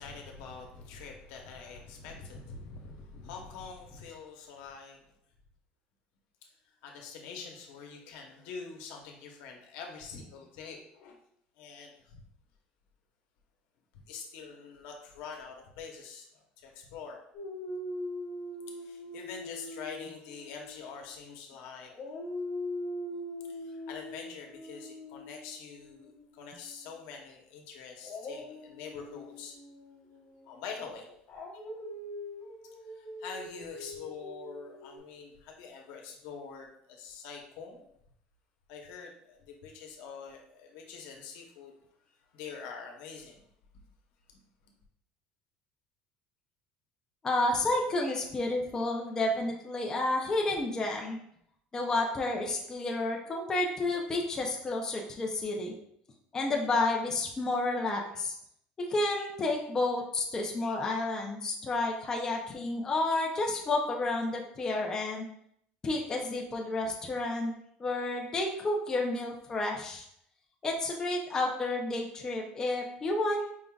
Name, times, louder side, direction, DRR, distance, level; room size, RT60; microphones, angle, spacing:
voice 1, 0.0-5.1 6.4-11.1 11.6-12.2 14.1-17.2 18.7-21.9 23.5-29.6 30.4-31.1 32.6-37.9 38.7-41.7 42.3-43.4 44.3-44.4 44.6-44.7, left 5 dB, 80° left, 1 dB, 0.9 m, -45 dB
Dog, 17.3-21.5 21.9-26.9 28.0-35.0, left 1 dB, 40° left, 1.0 m, -42 dB
voice 2, 47.2-51.2 51.7-55.7 56.3-58.4 58.8-65.3 65.8-67.5 67.8-70.1 70.6-73.5, left 2 dB, 20° left, 0 dB, 0.5 m, -30 dB
5.1 x 3.6 x 2.4 m, 0.70 s
cardioid pair, 165°, 3 cm